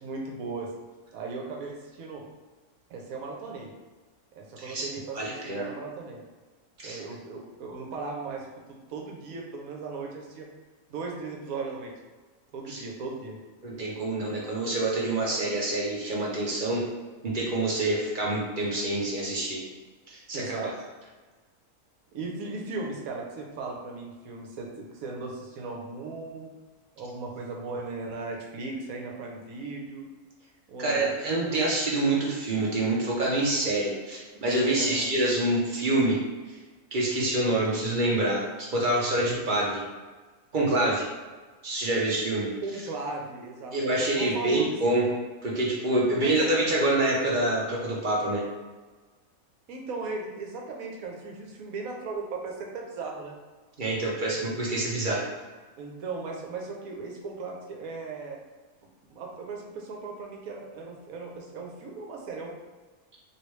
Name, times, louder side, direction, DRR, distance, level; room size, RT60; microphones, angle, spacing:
voice 1, 0.0-0.7 1.1-2.2 2.9-3.7 4.4-6.2 6.8-10.5 10.9-11.9 12.5-13.4 20.3-20.7 22.1-26.5 27.0-30.1 30.7-31.1 34.7-35.1 42.6-44.8 46.2-46.5 49.7-53.4 55.8-58.4 59.1-62.5, right 3 dB, 75° right, 0 dB, 1.1 m, -37 dB
voice 2, 5.1-5.6 6.8-7.0 12.7-12.8 13.6-16.8 17.2-19.6 20.1-20.4 30.8-36.2 36.5-36.6 36.9-39.8 40.5-41.1 41.6-42.5 43.7-45.0 45.4-48.4 53.8-55.3, right 2 dB, 50° right, -4 dB, 0.6 m, -26 dB
3.2 x 2.6 x 3.1 m, 1.3 s
omnidirectional pair, 1.5 m